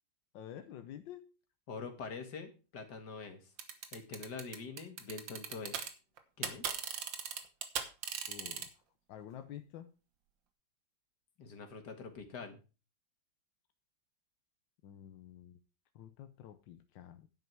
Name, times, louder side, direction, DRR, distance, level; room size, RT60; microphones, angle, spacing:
voice 1, 0.3-1.3 8.3-8.7 9.1-9.9 14.8-15.6 15.9-17.3, left 10 dB, 90° left, 9 dB, 1.5 m, -49 dB
voice 2, 1.7-3.5 3.9-5.8 6.4-6.6 11.4-12.6, left 4 dB, 65° left, 6 dB, 2.4 m, -45 dB
sound 1, 3.6-5.9 6.2-8.7, right 7 dB, 85° right, 1.9 m, -38 dB
10.5 x 8.1 x 4.6 m, 0.32 s
omnidirectional pair, 2.0 m